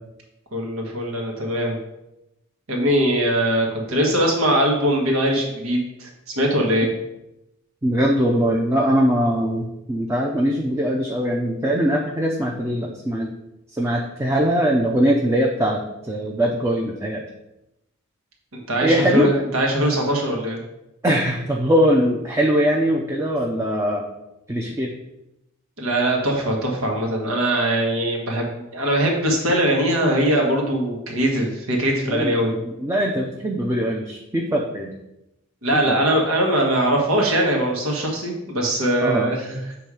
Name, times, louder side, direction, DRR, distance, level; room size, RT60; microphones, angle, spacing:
voice 1, 0.5-1.8 2.7-6.9 18.5-20.6 25.8-32.5 35.6-39.6, right 1 dB, 90° right, 0 dB, 1.5 m, -21 dB
voice 2, 7.8-13.3 13.7-17.3 18.8-19.3 21.0-24.0 24.5-24.9 32.0-35.0 35.7-36.0 39.0-39.3, equal, 15° right, -1 dB, 0.5 m, -21 dB
7.0 x 3.4 x 4.8 m, 0.89 s
head